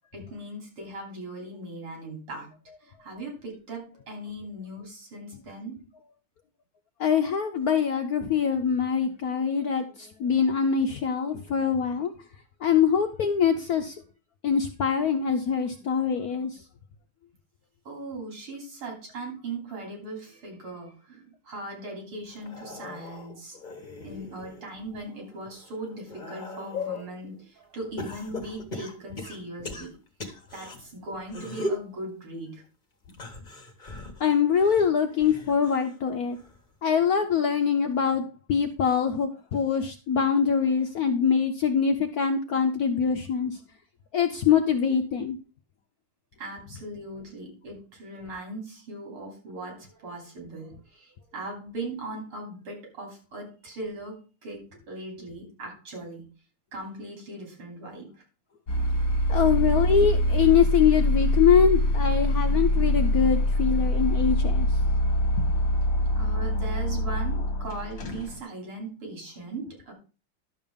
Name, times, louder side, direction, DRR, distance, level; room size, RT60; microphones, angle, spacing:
voice 1, 0.1-2.5 2.8-5.8 17.9-23.6 24.0-29.9 30.5-32.6 46.4-56.3 56.7-58.1 66.2-69.9, right 2 dB, 80° right, 1 dB, 3.9 m, -39 dB
voice 2, 7.0-12.1 12.6-14.0 14.4-16.6 34.2-36.4 36.8-43.6 44.1-45.4 59.3-64.7 65.4-65.5, left 7 dB, 65° left, 5 dB, 0.9 m, -24 dB
sound 1, 22.3-24.6 25.1-27.1 28.0-30.8 31.3-31.9 33.1-36.0 36.3-36.8 37.9-38.0, left 2 dB, 25° left, 1.3 m, -38 dB
sound 2, 58.7-68.4, left 1 dB, 45° left, 1.5 m, -24 dB
11.5 x 6.8 x 3.6 m, 0.34 s
omnidirectional pair, 2.3 m